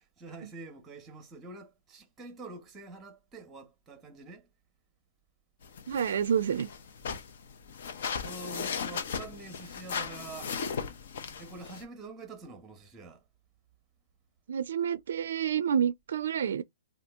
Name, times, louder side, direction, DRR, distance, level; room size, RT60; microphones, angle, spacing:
voice 1, 0.0-4.5 8.2-10.5 11.4-13.2, right 3 dB, 15° right, 0.8 m, -46 dB
sound 1, 5.6-11.8, left 6 dB, 60° left, 0.7 m, -37 dB
voice 2, 5.9-6.7 14.5-16.6, right 8 dB, 70° right, 0.3 m, -29 dB
2.8 x 2.3 x 3.5 m
hypercardioid pair, 160°, 0 cm